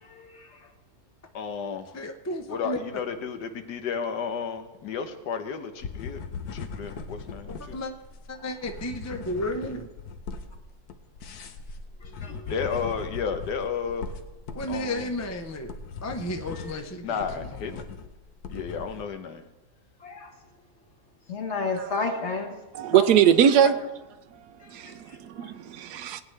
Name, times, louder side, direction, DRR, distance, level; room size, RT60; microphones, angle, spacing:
voice 1, 0.0-0.7 8.4-8.8 12.0-12.5 16.5-16.8 20.0-20.3 21.3-22.6 22.9-23.1 23.6-23.7 24.6-25.5, left 3 dB, 45° left, 1.7 m, -33 dB
voice 2, 1.3-2.0 2.5-6.2 6.5-7.8 12.5-14.1 14.7-15.1 17.0-17.8 18.5-19.4, left 6 dB, 85° left, 1.6 m, -32 dB
voice 3, 1.9-2.8 7.7-7.9 8.3-9.9 12.3-12.4 14.5-15.7 16.0-17.2, left 1 dB, 20° left, 0.4 m, -32 dB
sound 1, 5.8-19.1, left 5 dB, 70° left, 1.3 m, -39 dB
voice 4, 22.7-23.8 24.7-26.2, right 9 dB, 80° right, 1.2 m, -21 dB
19.0 x 9.3 x 3.3 m
omnidirectional pair, 1.8 m